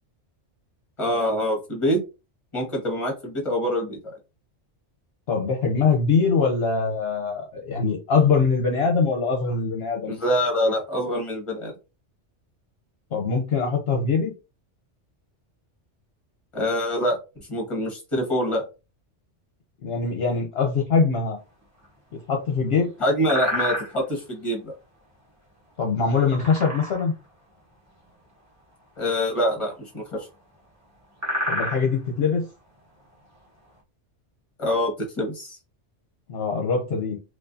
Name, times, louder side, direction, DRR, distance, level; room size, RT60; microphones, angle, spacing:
voice 1, 1.0-2.0 2.5-4.0 10.1-11.7 16.5-17.2 17.5-18.6 23.0-24.7 29.0-30.3 34.6-35.6, equal, 25° left, 1 dB, 1.4 m, -25 dB
voice 2, 5.3-10.2 13.1-14.3 19.8-21.4 22.3-22.9 25.8-27.1 31.5-32.5 36.3-37.2, left 5 dB, 60° left, 0 dB, 0.9 m, -23 dB
sound 1, 21.6-22.2 22.6-22.8 23.2-24.3 26.1-27.2 27.5-27.6 28.0-28.2 29.1-30.3 30.5-30.6 30.9-33.8, left 1 dB, 15° right, 1.2 m, -30 dB
4.4 x 2.5 x 2.6 m, 0.29 s
omnidirectional pair, 1.2 m